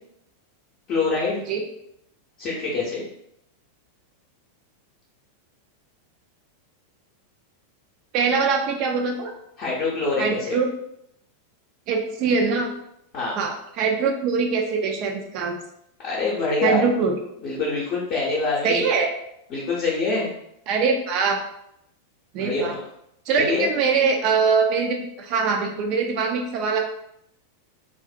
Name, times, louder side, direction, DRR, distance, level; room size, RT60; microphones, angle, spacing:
voice 1, 0.9-1.4 2.4-3.1 9.6-10.6 13.1-13.3 16.0-16.8 17.4-18.9 19.5-20.3 22.3-22.8 23.4-23.7, left 3 dB, 40° left, -6 dB, 0.6 m, -25 dB
voice 2, 8.1-9.3 10.2-10.7 11.9-12.7 13.4-15.6 16.6-17.1 18.6-19.1 20.7-21.4 22.3-22.8 23.3-26.8, right 5 dB, 40° right, 3 dB, 0.3 m, -22 dB
2.5 x 2.0 x 2.5 m, 0.77 s
figure-of-eight pair, 90°, 0 cm